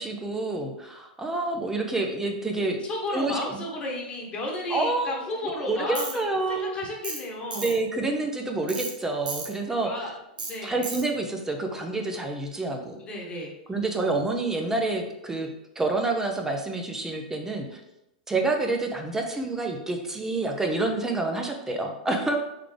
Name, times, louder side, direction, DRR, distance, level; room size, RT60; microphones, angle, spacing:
voice 1, 0.0-2.8 3.1-3.6 4.7-5.4 5.7-6.7 7.5-9.9 10.6-13.0 13.7-15.5 15.8-17.8 18.3-22.4, right 2 dB, 10° right, 3 dB, 0.7 m, -28 dB
voice 2, 2.8-7.8 9.8-10.9 13.0-13.5, left 1 dB, 25° left, -1 dB, 1.2 m, -33 dB
Tools, 6.0-6.1 7.0-7.2 7.5-7.7 8.7-8.9 9.3-9.5 10.4-10.5 10.8-11.0, right 4 dB, 90° right, 1.0 m, -33 dB
3.8 x 3.5 x 3.3 m, 0.88 s
hypercardioid pair, 115°, 5 cm